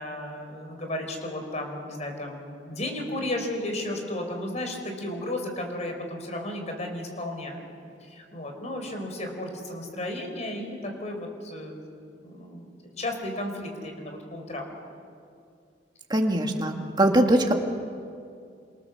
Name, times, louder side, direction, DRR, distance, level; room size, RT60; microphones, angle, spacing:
voice 1, 0.0-7.7 8.0-11.8 12.2-14.8, left 1 dB, 40° left, 4 dB, 4.7 m, -34 dB
voice 2, 16.1-17.5, right 1 dB, 25° right, 2 dB, 2.2 m, -22 dB
28.0 x 26.5 x 7.2 m, 2.4 s
head